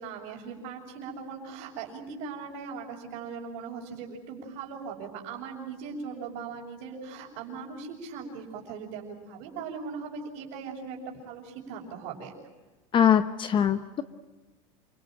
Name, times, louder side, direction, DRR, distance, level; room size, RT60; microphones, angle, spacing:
voice 1, 0.0-12.3, right 5 dB, 55° right, -6 dB, 6.1 m, -39 dB
voice 2, 12.9-14.0, left 9 dB, 30° left, 11 dB, 1.0 m, -22 dB
29.0 x 19.0 x 9.1 m, 1.2 s
supercardioid pair, 120°, 17 cm